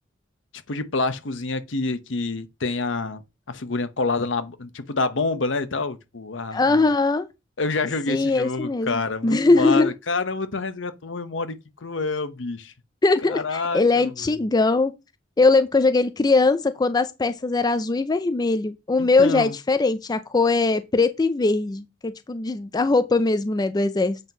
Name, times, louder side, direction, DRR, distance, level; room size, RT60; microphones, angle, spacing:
voice 1, 0.7-3.2 3.5-6.9 7.6-12.7 13.2-14.4 19.0-19.5, left 3 dB, 75° left, 0.9 m, -27 dB
voice 2, 6.5-7.3 8.1-9.9 13.0-14.9 15.4-24.2, left 3 dB, 20° left, 0.4 m, -21 dB
8.1 x 3.0 x 5.4 m
head